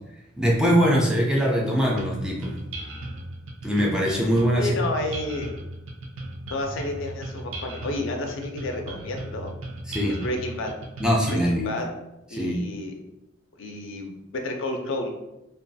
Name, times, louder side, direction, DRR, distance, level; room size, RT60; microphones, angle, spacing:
voice 1, 0.4-2.5 3.6-4.7 9.9-10.1 11.0-11.7 12.3-12.6, equal, 5° right, -2 dB, 0.3 m, -22 dB
sound 1, 2.0-11.6, right 1 dB, 70° right, 0.5 m, -36 dB
voice 2, 4.6-5.5 6.5-9.5 10.1-10.7 11.3-11.9 12.3-12.9 13.6-15.1, left 2 dB, 65° left, 3 dB, 0.4 m, -31 dB
2.3 x 2.2 x 2.6 m, 0.91 s
head